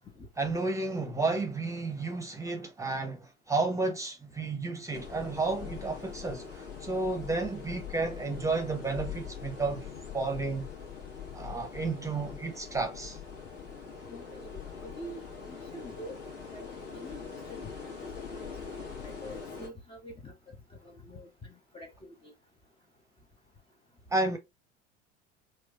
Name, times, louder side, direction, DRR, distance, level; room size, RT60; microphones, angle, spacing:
voice 1, 0.4-9.9 10.1-10.7 11.3-13.2 24.1-24.4, right 3 dB, 10° right, 0.9 m, -32 dB
sound 1, 4.9-19.7, left 6 dB, 45° left, 1.4 m, -43 dB
voice 2, 14.1-16.2 16.5-17.2 17.5-17.7 18.1-18.5 19.0-20.3 20.8-22.3, equal, 15° left, 0.8 m, -46 dB
4.5 x 2.3 x 2.4 m
figure-of-eight pair, 70°, 35 cm